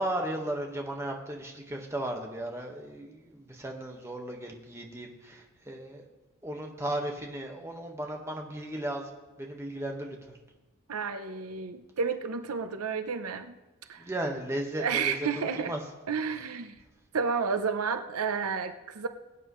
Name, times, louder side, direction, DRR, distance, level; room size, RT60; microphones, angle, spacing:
voice 1, 0.0-6.0 6.4-9.1 9.4-10.4 14.0-15.8, right 1 dB, 15° right, 1 dB, 1.4 m, -35 dB
voice 2, 10.9-13.6 13.9-14.1 14.8-15.7 16.1-16.7 17.1-19.1, right 5 dB, 85° right, 8 dB, 0.7 m, -31 dB
22.0 x 9.2 x 3.2 m, 1.1 s
head